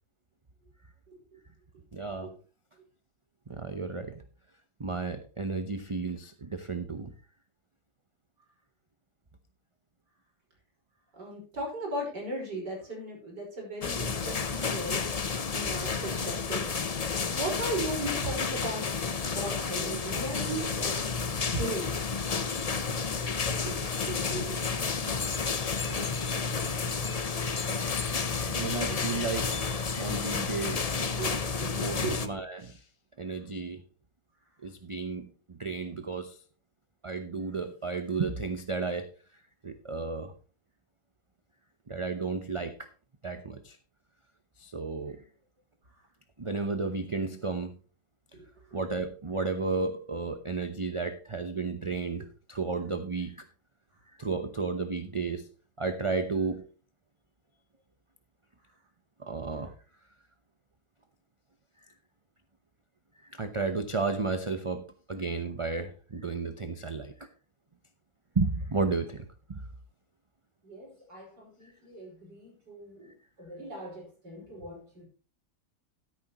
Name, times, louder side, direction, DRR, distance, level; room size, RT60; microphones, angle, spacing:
voice 1, 1.9-2.3 3.5-4.2 4.8-7.1 28.5-29.5 30.0-30.9 31.7-32.8 33.2-33.8 34.6-36.4 37.0-39.1 39.6-40.3 41.9-42.9 43.2-43.8 44.6-45.2 46.4-47.7 48.7-53.5 54.2-55.5 55.8-56.6 59.2-59.7 63.2-67.3 68.3-69.6 71.6-71.7, right 4 dB, 30° right, 8 dB, 0.6 m, -33 dB
voice 2, 11.2-15.0 15.5-16.7 17.2-18.9 19.3-21.1 21.5-21.9 23.6-24.6 28.5-28.9 31.2-32.2 70.6-73.1 73.4-75.1, right 1 dB, 80° right, -1 dB, 5.8 m, -37 dB
sound 1, 13.8-32.3, left 5 dB, 45° left, 0.4 m, -31 dB
13.0 x 10.5 x 3.0 m, 0.38 s
omnidirectional pair, 1.8 m